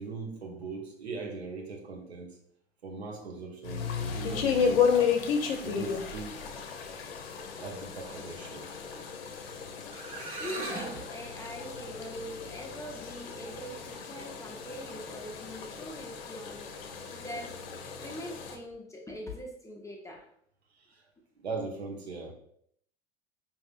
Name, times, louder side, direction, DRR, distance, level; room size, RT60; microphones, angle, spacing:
voice 1, 0.0-2.4 2.8-5.1 5.6-6.4 7.6-8.7 20.8-21.0 21.4-22.3, right 4 dB, 80° right, 1 dB, 0.9 m, -40 dB
sound 1, 3.6-18.6, left 6 dB, 65° left, 0.6 m, -33 dB
sound 2, 9.6-9.7 9.9-11.0, right 2 dB, 40° right, 1.4 m, -37 dB
voice 2, 10.4-16.7 17.1-17.6 18.0-20.3, equal, 10° left, -1 dB, 0.8 m, -43 dB
5.3 x 2.8 x 2.4 m, 0.67 s
figure-of-eight pair, 75°, 31 cm